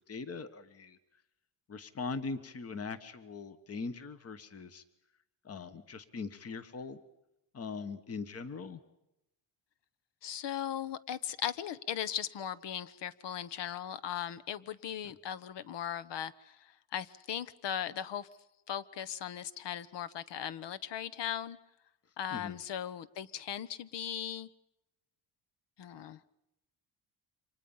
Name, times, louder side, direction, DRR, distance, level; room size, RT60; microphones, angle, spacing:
voice 1, 0.1-1.0 1.7-4.8 5.4-7.0 7.5-8.8 22.3-22.6, left 4 dB, 35° left, 12 dB, 1.4 m, -41 dB
voice 2, 10.2-18.3 18.7-21.6 22.2-24.5 25.8-26.2, left 10 dB, 70° left, 16 dB, 1.1 m, -38 dB
29.0 x 25.5 x 5.6 m, 0.87 s
cardioid pair, 160°, 44 cm